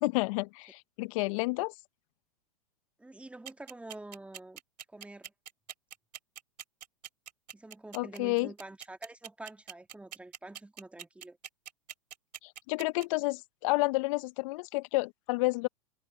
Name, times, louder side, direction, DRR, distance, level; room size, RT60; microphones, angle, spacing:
voice 1, 0.0-1.7 7.9-8.5 12.4-15.7, left 23 dB, 50° left, 0.7 m, -30 dB
voice 2, 3.0-4.6 4.9-5.3 7.5-11.4, right 2 dB, 5° right, 1.9 m, -47 dB
sound 1, 3.4-13.0, right 10 dB, 75° right, 2.5 m, -44 dB
hypercardioid pair, 105°, 21 cm